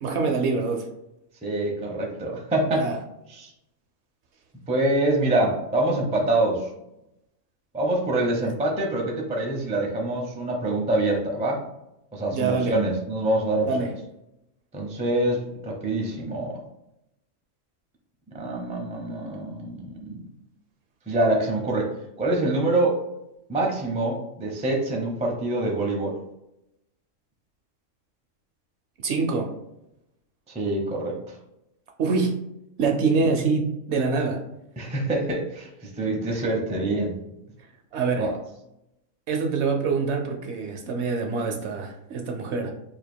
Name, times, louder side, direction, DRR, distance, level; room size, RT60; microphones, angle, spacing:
voice 1, 0.0-0.9 2.7-3.0 12.3-12.8 13.6-13.9 29.0-29.5 32.0-32.4 32.8-34.4 37.9-38.3 39.3-42.7, right 4 dB, 65° right, 3 dB, 0.8 m, -25 dB
voice 2, 1.4-2.9 3.3-3.5 4.7-6.7 7.7-11.6 12.1-13.7 14.7-16.6 18.3-20.2 21.1-21.9 22.2-23.0 23.5-26.2 30.5-31.4 34.8-37.1 38.2-38.3, right 2 dB, 10° right, -1 dB, 0.4 m, -25 dB
2.9 x 2.5 x 4.3 m, 0.86 s
omnidirectional pair, 1.4 m